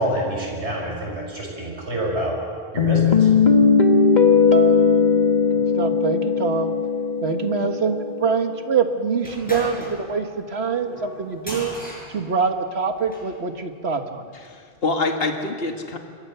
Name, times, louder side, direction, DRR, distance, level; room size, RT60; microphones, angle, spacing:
voice 1, 0.0-2.3 2.7-3.3, right 1 dB, 85° right, -1 dB, 6.5 m, -26 dB
sound 1, 2.8-8.5, left 5 dB, 40° left, 1.7 m, -18 dB
voice 2, 5.5-6.7 7.2-11.8 12.1-14.3, right 5 dB, 70° right, 6 dB, 1.8 m, -25 dB
sound 2, 9.2-13.3, equal, 5° left, 7.6 m, -37 dB
voice 3, 14.3-16.0, left 3 dB, 60° left, 3 dB, 2.1 m, -26 dB
27.0 x 23.0 x 6.9 m, 2.2 s
omnidirectional pair, 1.1 m